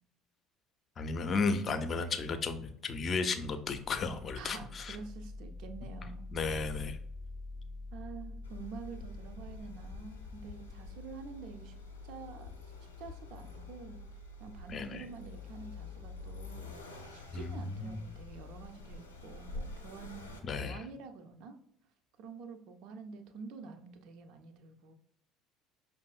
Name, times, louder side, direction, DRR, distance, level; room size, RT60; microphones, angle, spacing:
voice 1, 1.0-5.0 6.3-7.0 14.7-15.0 17.3-18.0 20.4-20.8, left 4 dB, 35° left, 8 dB, 0.5 m, -34 dB
sound 1, 3.6-11.2, left 2 dB, 90° right, 0.9 m, -46 dB
voice 2, 4.3-6.3 7.9-11.7 12.0-12.5 13.0-21.6 22.2-24.9, right 5 dB, 55° right, 7 dB, 0.5 m, -48 dB
Accelerating revving vroom, 8.4-20.4, left 3 dB, 85° left, 0.5 m, -47 dB
5.3 x 2.5 x 2.3 m, 0.68 s
figure-of-eight pair, 60°, 0 cm